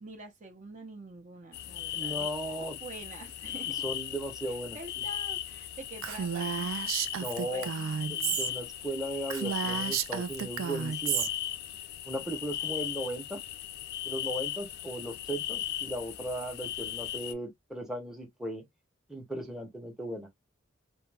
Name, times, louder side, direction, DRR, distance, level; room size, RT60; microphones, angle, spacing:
voice 1, 0.0-2.3 2.6-3.8 4.5-6.7 7.5-8.4, right 2 dB, 40° right, 0.6 m, -46 dB
sound 1, 1.5-17.3, left 11 dB, 55° left, 0.3 m, -37 dB
voice 2, 1.9-2.8 3.8-4.8 7.2-7.7 8.1-11.3 12.1-13.4 14.0-18.6 19.1-20.3, right 1 dB, 5° right, 0.7 m, -37 dB
Female speech woman speaking, 6.0-8.5 8.8-8.9 9.3-11.3, right 8 dB, 90° right, 0.4 m, -32 dB
2.2 x 2.1 x 3.2 m
head